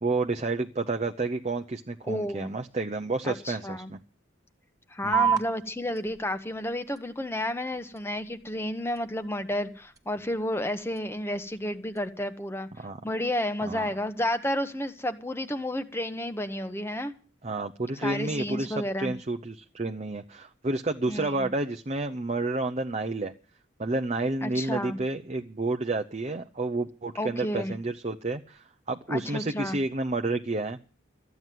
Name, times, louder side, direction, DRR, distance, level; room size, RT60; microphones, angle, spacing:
voice 1, 0.0-4.0 5.0-5.3 12.8-13.0 13.6-13.9 17.4-23.3 23.8-30.8, right 2 dB, 35° right, 5 dB, 0.7 m, -30 dB
voice 2, 2.1-2.5 3.2-3.9 4.9-12.7 13.0-17.1 18.0-19.1 21.1-21.5 24.4-25.0 27.2-27.7 29.1-29.8, left 1 dB, 10° left, 9 dB, 1.0 m, -31 dB
sound 1, 5.1-12.1, right 7 dB, 15° right, 1.4 m, -35 dB
14.0 x 9.4 x 7.5 m, 0.38 s
head